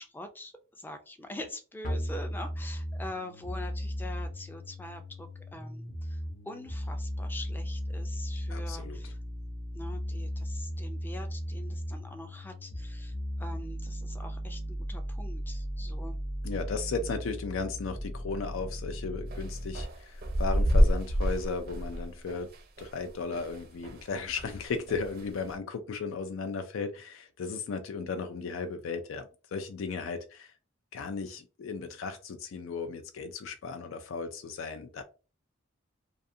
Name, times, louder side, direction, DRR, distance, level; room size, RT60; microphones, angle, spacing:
voice 1, 0.0-6.2 6.5-9.2 9.7-16.2, left 1 dB, 10° left, 7 dB, 0.4 m, -44 dB
sound 1, 1.8-19.8, equal, 40° left, 0.7 m, -36 dB
voice 2, 8.5-9.1 16.4-22.5 22.8-30.5 30.9-35.0, left 4 dB, 90° left, 7 dB, 0.4 m, -36 dB
sound 2, 19.3-24.1 24.4-25.5, equal, 50° right, 0.5 m, -28 dB
2.4 x 2.4 x 2.6 m, 0.33 s
head